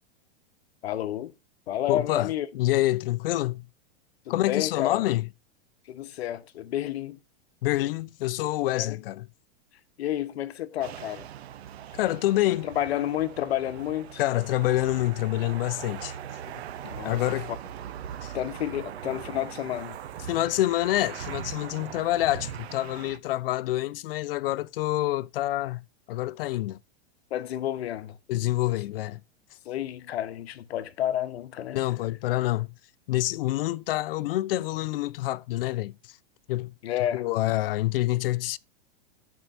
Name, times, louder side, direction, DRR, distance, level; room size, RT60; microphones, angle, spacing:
voice 1, 0.8-1.3 1.7-2.5 4.3-5.1 5.9-7.2 8.7-9.0 10.0-11.3 12.5-14.2 16.8-17.2 18.3-20.0 27.3-28.2 29.6-31.8 36.8-37.2, left 12 dB, 75° left, 1.0 m, -30 dB
voice 2, 1.9-3.7 4.3-5.3 7.6-9.3 11.9-12.7 14.2-16.2 16.8-17.5 18.2-18.3 20.3-26.8 28.3-29.2 31.7-32.7 33.1-36.2 36.5-36.7 37.1-38.6, left 16 dB, 60° left, 0.6 m, -27 dB
sound 1, 10.8-23.2, right 9 dB, 80° right, 0.9 m, -40 dB
14.0 x 4.7 x 2.6 m
supercardioid pair, 145°, 31 cm